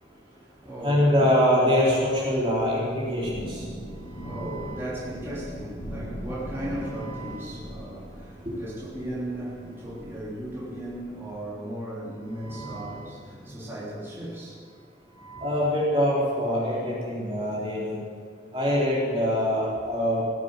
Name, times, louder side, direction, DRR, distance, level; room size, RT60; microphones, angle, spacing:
voice 1, 0.0-1.4 3.8-15.6, right 1 dB, 15° right, 3.3 m, -37 dB
voice 2, 0.8-3.7 8.4-8.6 15.4-18.0 18.5-20.2, equal, 30° right, 3.4 m, -24 dB
Thunder / Rain, 2.9-11.2, equal, 45° left, 3.2 m, -40 dB
18.0 x 8.3 x 8.0 m
head